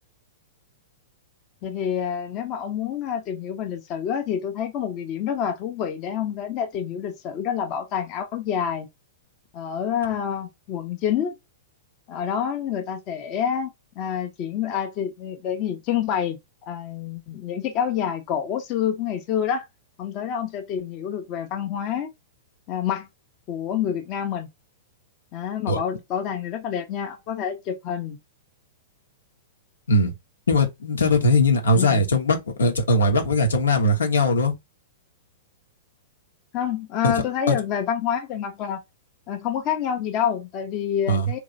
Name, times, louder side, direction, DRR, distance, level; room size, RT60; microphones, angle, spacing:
voice 1, 1.6-8.9 9.5-11.4 12.1-16.4 16.7-19.7 20.0-22.1 22.7-23.1 23.5-24.5 25.3-28.2 31.8-32.0 36.5-38.8 39.3-41.4, left 8 dB, 40° left, 0.8 m, -27 dB
voice 2, 30.5-34.5 37.0-37.1 37.5-37.6 41.1-41.3, left 2 dB, 85° left, 1.2 m, -20 dB
3.1 x 2.9 x 3.9 m
hypercardioid pair, 110°, 0 cm